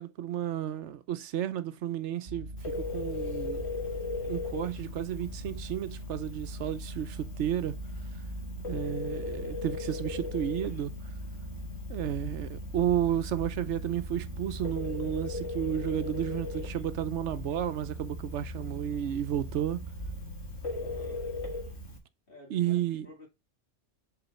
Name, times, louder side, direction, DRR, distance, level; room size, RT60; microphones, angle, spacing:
voice 1, 0.0-3.6 4.3-7.7 8.7-10.9 11.9-19.8 22.5-23.1, right 11 dB, 85° right, 1.0 m, -32 dB
sound 1, 2.3-21.9, equal, 55° right, 1.2 m, -41 dB
Telephone, 2.6-22.0, left 3 dB, 70° left, 2.0 m, -39 dB
voice 2, 20.8-21.2 22.3-23.3, left 1 dB, 55° left, 2.9 m, -50 dB
7.0 x 4.4 x 4.2 m
omnidirectional pair, 1.2 m